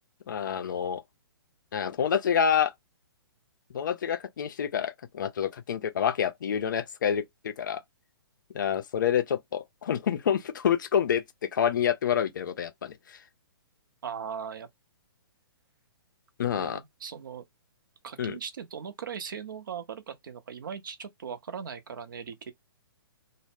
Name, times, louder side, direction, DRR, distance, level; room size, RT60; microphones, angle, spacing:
voice 1, 0.3-1.0 1.7-2.7 3.7-7.8 8.5-13.2 16.4-16.8 18.2-18.4, left 8 dB, 55° left, 0.4 m, -28 dB
voice 2, 14.0-14.7 16.5-17.4 18.0-22.5, right 7 dB, 55° right, 0.6 m, -39 dB
2.0 x 2.0 x 3.3 m
figure-of-eight pair, 125°, 13 cm